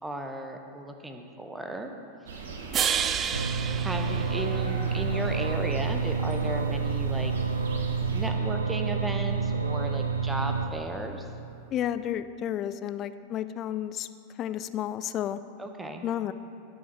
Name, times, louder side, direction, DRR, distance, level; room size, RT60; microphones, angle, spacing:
voice 1, 0.0-1.9 3.7-7.3 8.1-11.3 15.6-16.0, right 2 dB, 10° right, 5 dB, 1.0 m, -35 dB
sound 1, 2.3-8.3, right 4 dB, 60° right, 1.4 m, -39 dB
sound 2, 2.7-5.1, right 8 dB, 25° right, 0.5 m, -30 dB
sound 3, 3.3-10.7, right 5 dB, 80° right, 0.6 m, -29 dB
voice 2, 11.7-14.1 14.4-15.4 16.0-16.3, left 11 dB, 35° left, 13 dB, 0.4 m, -31 dB
17.5 x 6.4 x 4.6 m, 2.7 s
figure-of-eight pair, 90°, 0 cm